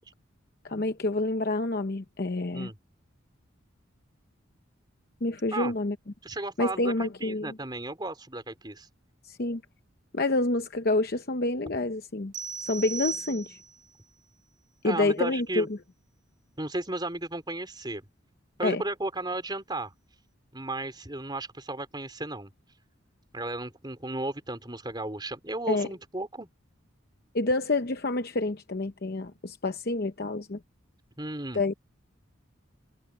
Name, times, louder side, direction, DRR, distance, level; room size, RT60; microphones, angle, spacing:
voice 1, 0.6-2.7 5.2-6.0 6.6-7.6 9.2-9.6 10.1-12.3 12.6-13.6 14.8-15.8 18.6-18.8 25.7-25.9 27.3-30.6 31.5-31.7, left 2 dB, 50° left, 0.8 m, -28 dB
voice 2, 6.2-8.9 14.8-15.7 16.6-18.0 18.6-19.9 20.5-22.5 23.3-26.5 31.2-31.6, right 2 dB, 20° right, 4.1 m, -34 dB
sound 1, 12.3-13.9, right 5 dB, 40° right, 1.3 m, -36 dB
head